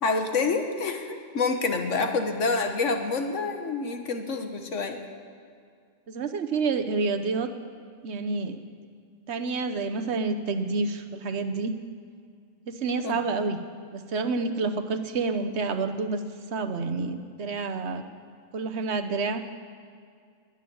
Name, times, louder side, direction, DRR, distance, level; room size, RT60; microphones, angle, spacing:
voice 1, 0.0-5.0 13.0-13.2, left 4 dB, 75° left, 5 dB, 1.6 m, -27 dB
voice 2, 6.1-7.5 8.0-8.6 9.3-11.8 12.7-13.6 13.9-16.2 16.5-18.0 18.5-19.4, right 4 dB, 65° right, 8 dB, 1.2 m, -28 dB
21.0 x 9.1 x 7.0 m, 2.2 s
omnidirectional pair, 1.3 m